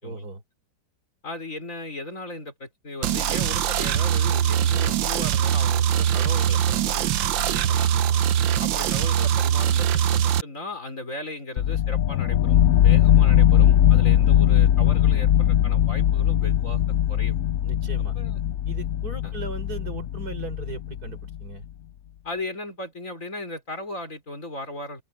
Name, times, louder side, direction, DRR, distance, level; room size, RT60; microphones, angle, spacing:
voice 1, 0.0-0.4 7.3-8.3 17.6-18.1 18.7-21.7, right 3 dB, 50° right, 4.7 m, -38 dB
voice 2, 1.2-7.0 7.5-7.9 8.6-16.8 17.1-17.4 18.1-18.4 19.2-19.3 22.2-25.0, left 2 dB, 40° left, 5.0 m, -36 dB
sound 1, 3.0-10.4, right 10 dB, 80° right, 1.5 m, -22 dB
sound 2, 11.6-21.4, left 11 dB, 75° left, 0.7 m, -20 dB
open air
omnidirectional pair, 2.1 m